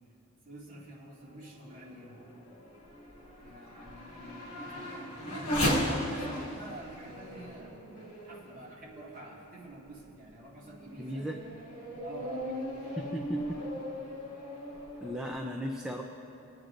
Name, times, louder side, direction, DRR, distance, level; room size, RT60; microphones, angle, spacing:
voice 1, 0.4-2.2 3.4-5.3 5.8-7.8 8.2-11.3 12.0-13.1, right 1 dB, 35° right, -5 dB, 2.1 m, -48 dB
Race car auto racing / Accelerating revving vroom, 1.3-9.3 9.9-10.0 10.6-15.3, equal, 65° left, 2.4 m, -37 dB
voice 2, 11.0-11.4 13.0-13.4 15.0-16.0, equal, 5° right, 0 dB, 0.5 m, -36 dB
24.5 x 9.3 x 2.6 m, 2.7 s
head